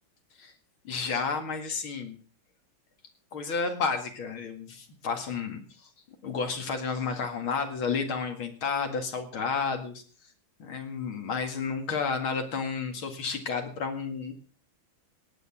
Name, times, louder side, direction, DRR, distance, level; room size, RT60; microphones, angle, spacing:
voice 1, 0.8-2.1 3.3-5.6 6.2-10.0 10.6-14.3, left 5 dB, 75° left, 6 dB, 2.9 m, -31 dB
18.0 x 9.4 x 6.0 m, 0.41 s
omnidirectional pair, 2.3 m